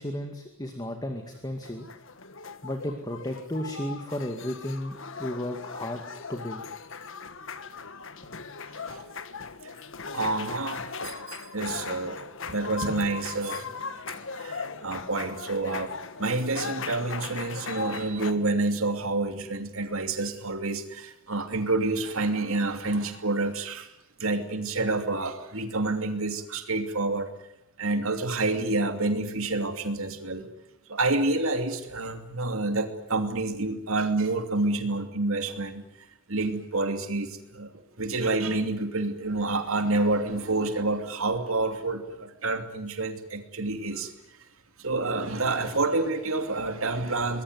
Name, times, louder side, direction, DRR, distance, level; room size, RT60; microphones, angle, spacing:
voice 1, 0.0-1.9 2.6-6.0 6.3-6.6, left 1 dB, 20° left, 5 dB, 2.1 m, -33 dB
sound 1, 1.3-18.3, left 5 dB, 60° left, 1.5 m, -38 dB
voice 2, 10.1-12.2 12.5-15.9 16.2-23.9 24.2-27.3 27.8-30.5 30.9-35.9 36.3-37.7 38.0-44.1 44.8-47.4, right 2 dB, 70° right, 7 dB, 2.9 m, -28 dB
24.0 x 21.0 x 9.8 m, 0.85 s
head